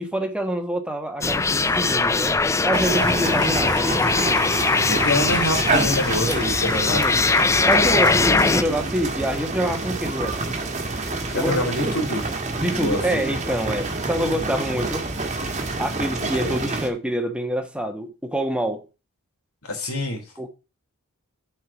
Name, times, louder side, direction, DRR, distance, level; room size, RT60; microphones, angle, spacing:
voice 1, 0.0-2.3 2.6-3.8 6.3-7.2 7.7-10.5 11.4-11.6 12.5-15.0 15.8-18.8 20.4-20.5, right 1 dB, 5° right, 1.3 m, -26 dB
sound 1, 1.2-8.6, left 3 dB, 15° left, 0.3 m, -21 dB
sound 2, 2.7-16.9, right 3 dB, 30° right, 1.6 m, -28 dB
voice 2, 4.9-7.2 7.6-8.4 11.3-12.2 12.7-13.2 16.2-16.6 19.7-20.2, left 1 dB, 70° left, 3.2 m, -26 dB
7.4 x 4.6 x 7.1 m
head